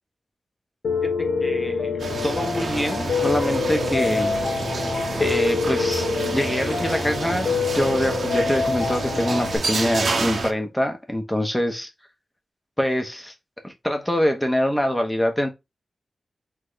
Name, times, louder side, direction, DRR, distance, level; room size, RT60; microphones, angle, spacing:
Piano, 0.8-9.6, left 5 dB, 80° left, 1.2 m, -26 dB
voice 1, 1.4-4.3 5.2-11.9 12.8-13.3 13.6-15.5, equal, 5° left, 1.2 m, -25 dB
sound 1, 2.0-10.5, right 4 dB, 75° right, 0.9 m, -29 dB
3.7 x 3.3 x 3.9 m
wide cardioid pair, 125°, 0 cm